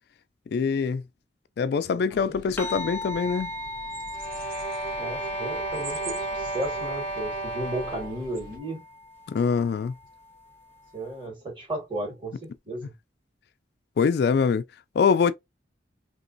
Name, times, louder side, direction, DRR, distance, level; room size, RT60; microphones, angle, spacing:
voice 1, 0.5-1.0 1.6-3.5 9.3-9.9 14.0-14.6 15.0-15.3, left 5 dB, 60° left, 0.3 m, -23 dB
sound 1, 2.1-8.6, right 4 dB, 50° right, 0.7 m, -45 dB
sound 2, 2.6-11.3, left 2 dB, 10° left, 0.7 m, -39 dB
sound 3, 4.1-8.3, right 2 dB, 65° right, 2.1 m, -33 dB
voice 2, 5.0-8.8 10.9-12.9, right 1 dB, 30° right, 1.7 m, -34 dB
3.0 x 3.0 x 2.6 m
head